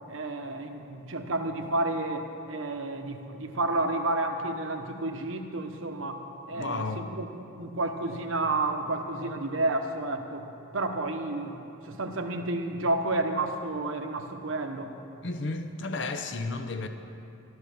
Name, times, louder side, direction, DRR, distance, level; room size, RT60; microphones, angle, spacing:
voice 1, 0.1-7.3 7.6-10.4 10.7-11.6 11.8-14.9, right 2 dB, 80° right, 5 dB, 1.1 m, -30 dB
voice 2, 6.5-7.1 15.2-16.9, left 3 dB, 60° left, 7 dB, 0.7 m, -33 dB
12.5 x 12.5 x 6.7 m, 2.7 s
head